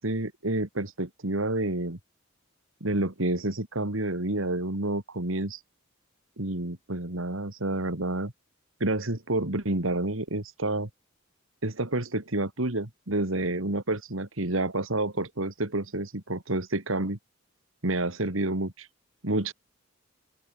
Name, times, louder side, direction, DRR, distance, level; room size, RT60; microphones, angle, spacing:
voice 1, 0.0-2.0 2.8-5.6 6.4-8.3 8.8-10.9 11.6-17.2 17.8-18.9 19.2-19.5, right 2 dB, 75° right, 2.6 m, -29 dB
open air
head